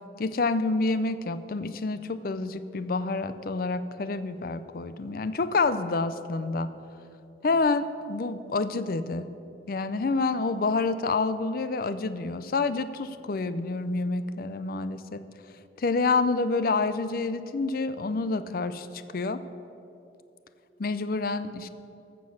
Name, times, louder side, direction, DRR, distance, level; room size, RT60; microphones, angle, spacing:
voice 1, 0.2-6.7 7.4-9.3 9.7-15.2 15.8-18.9 19.1-19.4 20.8-21.7, left 3 dB, 55° left, 13 dB, 0.5 m, -28 dB
14.5 x 6.0 x 6.4 m, 2.8 s
head